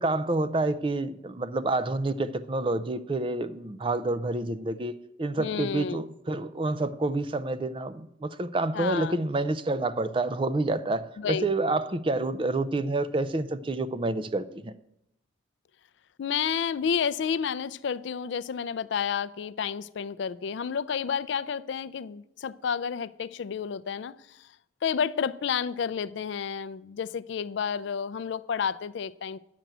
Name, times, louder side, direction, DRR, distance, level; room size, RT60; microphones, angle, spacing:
voice 1, 0.0-14.7, right 2 dB, 25° right, 0.4 m, -28 dB
voice 2, 5.4-6.0 8.7-9.2 11.2-11.5 16.2-24.5 24.8-29.4, left 7 dB, 65° left, 0.4 m, -30 dB
8.9 x 6.0 x 8.1 m
head